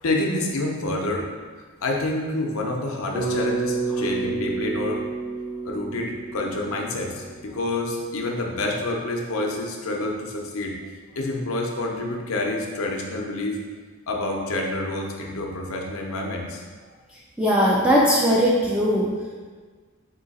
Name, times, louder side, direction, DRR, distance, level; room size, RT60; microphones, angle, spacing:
voice 1, 0.0-1.3 1.8-5.0 5.6-10.7 11.1-13.6 14.1-16.6, left 2 dB, 85° left, 0 dB, 0.7 m, -28 dB
Bass guitar, 3.1-7.5, right 3 dB, 30° right, 0.8 m, -29 dB
voice 2, 17.4-19.1, equal, 5° right, -6 dB, 0.4 m, -19 dB
3.8 x 2.8 x 4.0 m, 1.5 s
head